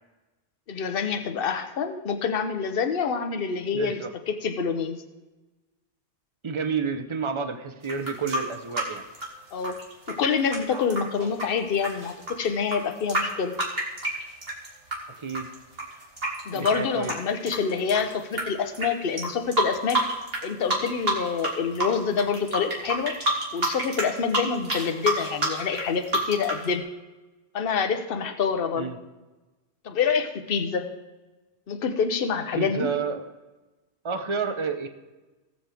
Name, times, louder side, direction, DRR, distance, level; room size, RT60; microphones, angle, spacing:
voice 1, 0.7-5.0 9.5-9.8 10.1-13.5 16.5-20.0 20.4-23.2 23.5-26.8 27.5-28.9 29.8-30.9 31.7-32.9, left 6 dB, 55° left, 7 dB, 1.1 m, -27 dB
voice 2, 3.7-4.1 6.4-9.0 15.2-15.5 16.5-17.1 28.8-29.0 32.5-33.2 34.0-34.9, right 5 dB, 30° right, 7 dB, 0.8 m, -30 dB
sound 1, 7.8-15.0 15.3-18.4 18.7-18.9 19.2-20.4 20.7-21.5 21.8-26.6, right 1 dB, 55° right, 2.7 m, -28 dB
19.0 x 7.8 x 3.5 m, 1.1 s
omnidirectional pair, 1.2 m